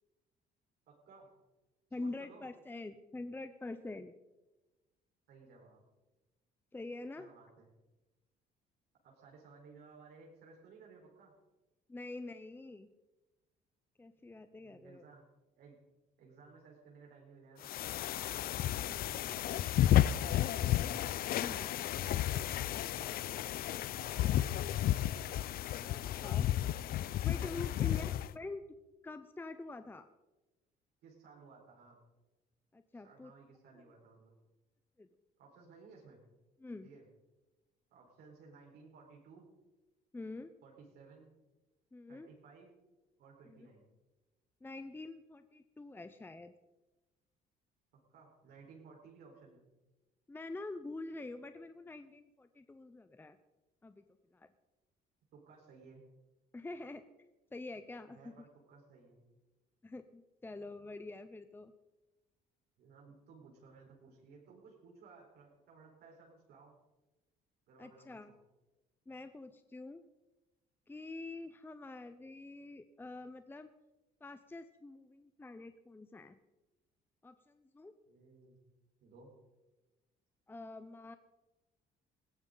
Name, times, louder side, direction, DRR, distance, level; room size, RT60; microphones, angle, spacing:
voice 1, 0.9-1.4 2.0-2.5 5.3-5.8 7.2-7.7 9.0-11.3 14.6-15.3 15.6-15.8 16.2-17.7 19.1-19.5 20.0-20.7 21.5-23.3 24.0-24.7 27.8-28.5 31.0-32.0 32.9-34.3 35.4-36.2 36.8-37.1 37.9-39.5 40.6-41.3 42.1-42.7 43.2-43.8 48.1-49.7 55.3-56.0 58.1-59.2 62.8-66.8 67.7-68.4 78.1-78.6 79.0-79.3, right 4 dB, 70° right, -2 dB, 4.5 m, -58 dB
voice 2, 1.9-4.1 6.7-7.3 11.9-12.9 14.0-15.0 21.4-21.6 25.8-26.5 27.2-28.6 29.0-30.1 32.7-33.3 33.8-33.9 35.0-35.1 36.6-36.9 40.1-40.5 41.9-42.3 43.4-43.7 44.6-46.5 50.3-53.4 53.8-54.0 54.3-54.5 56.5-57.0 57.5-58.3 59.8-61.7 67.8-68.3 69.1-70.0 70.9-73.7 74.2-76.4 77.2-77.9 80.5-81.2, left 2 dB, 10° left, 10 dB, 0.7 m, -46 dB
sound 1, 17.6-28.3, left 12 dB, 60° left, 0.5 m, -32 dB
20.5 x 15.5 x 4.0 m, 1.1 s
cardioid pair, 110°, 17 cm